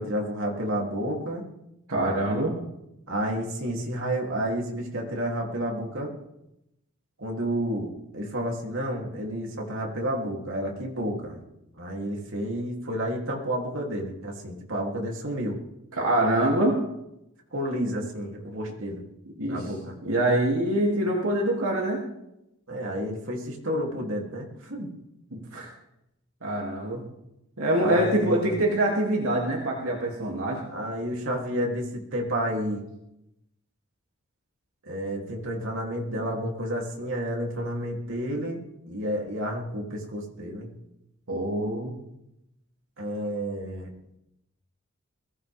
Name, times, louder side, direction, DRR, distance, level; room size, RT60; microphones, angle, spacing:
voice 1, 0.0-1.5 3.1-6.1 7.2-11.4 11.8-15.6 17.5-19.0 19.5-20.0 22.7-24.9 27.8-28.6 30.7-32.8 34.8-38.6 38.9-40.7 43.0-43.9, equal, 65° right, -1 dB, 3.3 m, -30 dB
voice 2, 1.9-2.5 15.9-16.8 19.4-19.6 20.0-22.0 25.3-25.7 26.4-27.0 27.6-30.6 41.3-41.9, right 1 dB, 80° right, -2 dB, 2.9 m, -25 dB
21.5 x 16.0 x 3.7 m, 0.85 s
head